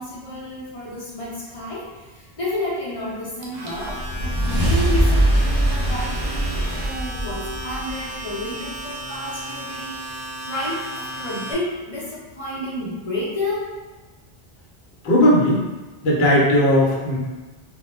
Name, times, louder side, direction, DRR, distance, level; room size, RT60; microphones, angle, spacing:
voice 1, 0.0-13.7, left 1 dB, 40° left, -7 dB, 0.6 m, -31 dB
Domestic sounds home sounds, 3.4-11.5, right 1 dB, 70° right, 0.8 m, -35 dB
sound 1, 3.8-8.4, right 1 dB, 30° right, 0.6 m, -22 dB
voice 2, 15.0-15.7 16.0-17.2, equal, 70° left, -4 dB, 0.9 m, -17 dB
2.2 x 2.1 x 3.1 m, 1.2 s
omnidirectional pair, 1.1 m